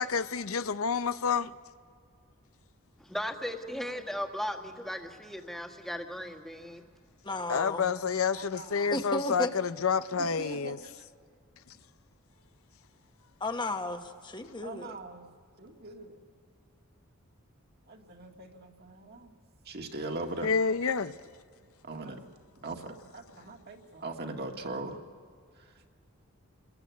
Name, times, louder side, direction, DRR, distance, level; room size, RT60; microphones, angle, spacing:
voice 1, 0.0-1.5 7.5-10.8 20.4-21.1, left 6 dB, 85° left, 0.7 m, -29 dB
voice 2, 3.0-6.8, equal, ahead, 1.6 m, -37 dB
voice 3, 7.2-7.9 8.9-9.5 13.4-14.9, left 2 dB, 20° left, 1.2 m, -33 dB
voice 4, 8.3-9.0 10.2-11.0 14.6-15.3 15.6-16.3 17.9-19.3 19.7-20.5 21.6-22.2 22.6-25.0 25.6-25.9, right 2 dB, 50° right, 1.9 m, -41 dB
28.0 x 20.5 x 9.4 m
head